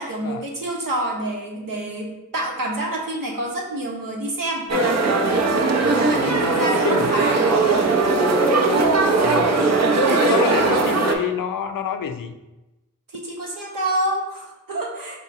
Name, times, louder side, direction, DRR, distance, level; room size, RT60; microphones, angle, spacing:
voice 1, 0.0-4.7 5.9-7.9 10.0-10.5 10.9-11.1 13.1-15.2, right 1 dB, 80° right, -1 dB, 1.0 m, -28 dB
sound 1, 4.7-11.1, right 3 dB, 55° right, 0.6 m, -19 dB
voice 2, 6.2-7.1 9.2-9.6 10.2-12.3, left 7 dB, 80° left, 8 dB, 0.5 m, -28 dB
3.9 x 2.9 x 4.7 m, 1.0 s
cardioid pair, 50°, 33 cm